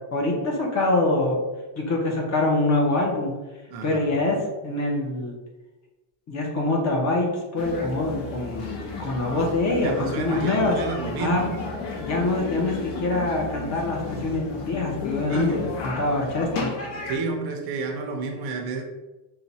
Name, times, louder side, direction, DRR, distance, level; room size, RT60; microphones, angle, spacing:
voice 1, 0.1-1.4 1.8-3.3 3.8-5.4 6.3-10.8 11.2-11.5 12.0-16.7, left 2 dB, 35° left, 0 dB, 0.9 m, -25 dB
voice 2, 3.7-4.1 9.8-11.8 15.3-15.8 17.1-18.8, right 4 dB, 50° right, 3 dB, 0.7 m, -30 dB
sound 1, 7.6-17.2, left 3 dB, 65° left, 1.3 m, -33 dB
5.7 x 2.3 x 4.1 m, 1.1 s
cardioid pair, 180°, 48 cm